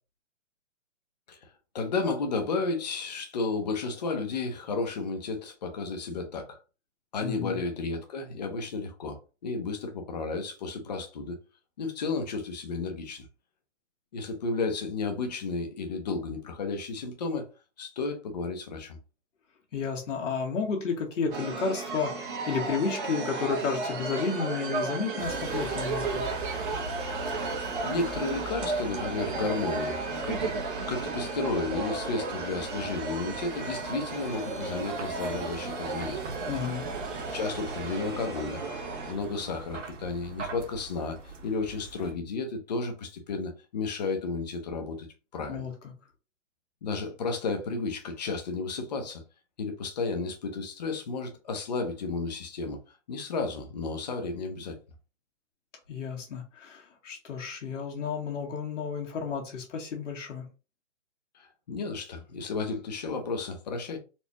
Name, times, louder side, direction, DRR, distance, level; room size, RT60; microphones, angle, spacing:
voice 1, 1.7-6.6 7.1-11.4 11.8-13.3 14.1-17.5 17.8-19.0 27.2-27.4 27.8-30.5 30.9-36.3 37.3-38.6 39.1-45.1 45.3-45.7 46.8-49.2 49.6-52.8 53.1-54.8 61.3-64.0, left 3 dB, 35° left, 0.7 m, -33 dB
voice 2, 7.2-7.6 19.7-26.2 36.5-36.8 45.5-45.9 55.9-60.4, left 5 dB, 85° left, 1.6 m, -32 dB
sound 1, 21.3-39.1, right 3 dB, 45° right, 1.0 m, -34 dB
Vehicle, 25.2-42.1, right 3 dB, 90° right, 1.2 m, -41 dB
4.2 x 2.4 x 2.9 m
hypercardioid pair, 175°, 36 cm